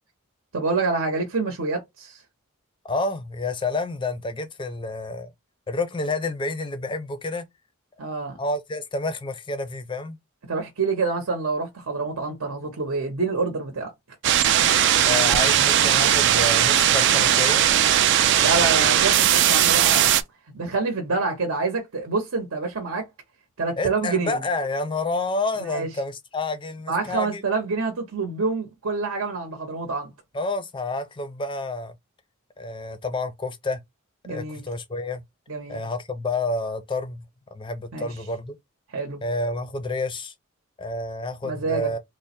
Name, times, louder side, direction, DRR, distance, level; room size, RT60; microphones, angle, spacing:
voice 1, 0.5-2.2 8.0-8.3 10.5-13.9 18.4-20.2 20.5-23.1 23.6-24.4 25.6-25.9 26.9-30.1 34.2-34.6 35.5-35.8 37.9-38.1 38.9-39.2 41.4-41.9, right 4 dB, 75° right, 0.8 m, -27 dB
voice 2, 2.8-5.3 5.7-7.5 8.4-10.2 15.0-17.7 18.4-18.9 23.8-27.4 30.3-31.9 32.6-33.8 34.3-35.2 35.7-37.2 37.5-38.6 39.2-40.3 40.8-42.0, left 2 dB, 20° left, 0.4 m, -29 dB
sound 1, 14.2-20.2, right 10 dB, 55° right, 0.3 m, -18 dB
3.2 x 2.0 x 4.2 m
head